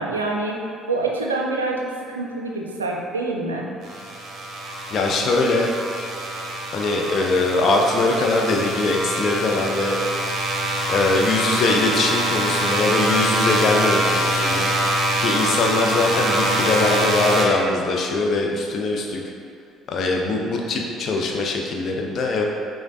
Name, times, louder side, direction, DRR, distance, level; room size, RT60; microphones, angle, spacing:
voice 1, 0.0-3.7 5.2-5.3, right 2 dB, 85° right, 0 dB, 0.3 m, -26 dB
sound 1, 3.8-17.5, right 1 dB, 50° right, 0.6 m, -24 dB
voice 2, 4.9-5.7 6.7-10.0 10.9-14.7 15.2-19.2 19.9-22.4, left 2 dB, 50° left, 1 dB, 0.5 m, -22 dB
6.2 x 2.1 x 2.6 m, 2.5 s
figure-of-eight pair, 50°, 0 cm